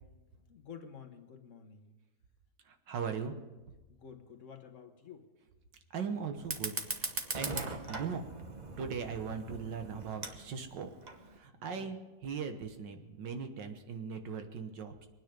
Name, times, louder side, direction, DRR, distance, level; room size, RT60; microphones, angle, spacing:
voice 1, 0.5-2.0 3.9-5.3 8.7-8.9 11.5-11.9, left 7 dB, 50° left, 5 dB, 1.4 m, -51 dB
voice 2, 2.7-3.3 5.9-7.1 7.3-8.3 8.8-10.9 11.3-15.1, right 6 dB, 90° right, 7 dB, 1.9 m, -39 dB
Fire, 6.4-11.4, right 3 dB, 30° right, 0.9 m, -40 dB
23.5 x 9.6 x 5.2 m, 1.1 s
omnidirectional pair, 1.9 m